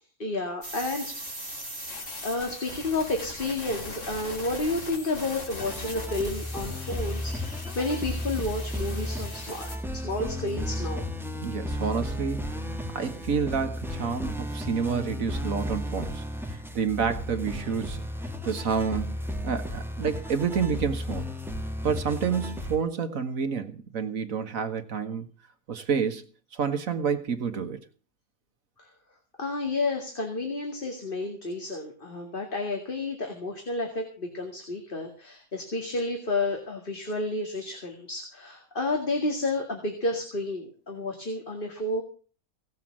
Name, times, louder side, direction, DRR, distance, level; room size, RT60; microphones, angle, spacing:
voice 1, 0.2-1.2 1.9-9.7 9.9-11.1 28.8-28.9 29.4-42.0, left 2 dB, 40° left, 2.4 m, -31 dB
sound 1, 0.6-9.8, left 1 dB, 60° left, 3.2 m, -40 dB
sound 2, 5.6-22.8, left 1 dB, ahead, 1.5 m, -34 dB
voice 2, 11.4-12.6 12.9-16.2 16.5-18.0 18.4-19.2 19.4-21.3 21.8-25.3 25.7-26.2 26.5-27.8, right 6 dB, 75° right, 1.8 m, -29 dB
17.5 x 7.5 x 7.4 m
omnidirectional pair, 1.4 m